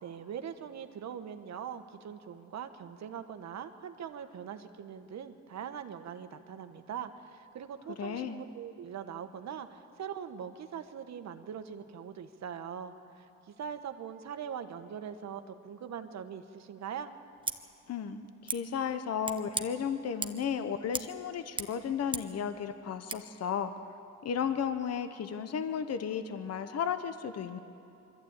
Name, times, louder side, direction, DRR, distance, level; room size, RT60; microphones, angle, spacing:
voice 1, 0.0-13.3 13.6-17.1, right 8 dB, 65° right, 9 dB, 1.2 m, -42 dB
voice 2, 7.9-8.4 17.9-23.7 24.2-27.6, left 7 dB, 55° left, 10 dB, 1.0 m, -34 dB
Scissors, 17.4-17.6 18.5-18.6 19.2-19.7 20.2-20.5 20.9-21.1 21.4-22.4 23.1-23.2, right 3 dB, 15° right, 1.1 m, -37 dB
23.0 x 14.0 x 8.8 m, 2.8 s
cardioid pair, 90°, 30 cm